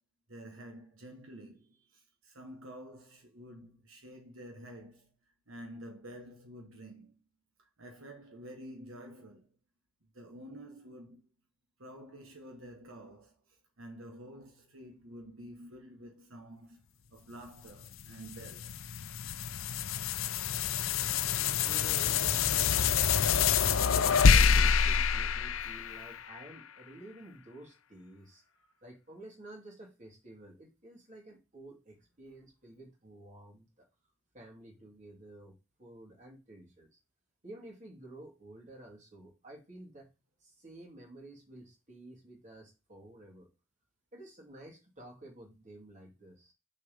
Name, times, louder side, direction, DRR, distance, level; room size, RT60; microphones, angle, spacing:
voice 1, 0.3-5.1 5.5-7.2 7.8-9.5 10.1-11.2 11.8-16.8 17.1-18.8 25.6-26.0, right 1 dB, 80° right, 1.4 m, -49 dB
sound 1, 17.8-26.4, left 6 dB, 80° left, 0.6 m, -27 dB
voice 2, 21.7-28.4 28.8-33.9 34.3-35.5 35.8-36.9 37.4-40.1 40.4-43.5 44.1-46.5, right 1 dB, 35° right, 2.8 m, -51 dB
6.7 x 4.3 x 5.4 m
head